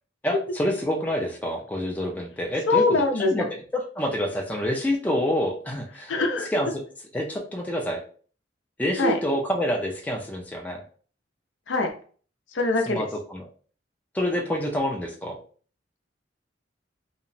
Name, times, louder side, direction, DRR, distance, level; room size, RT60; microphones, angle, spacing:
voice 1, 0.2-2.8 3.3-3.5 3.7-6.1 6.5-6.7 7.1-8.0 8.8-10.8 12.9-13.5 14.1-15.4, equal, 10° left, 0 dB, 0.3 m, -27 dB
voice 2, 2.7-3.5 6.1-6.5 9.0-9.2 11.7-11.9 12.5-13.1, left 3 dB, 75° left, 4 dB, 0.5 m, -23 dB
2.9 x 2.1 x 2.5 m, 0.43 s
head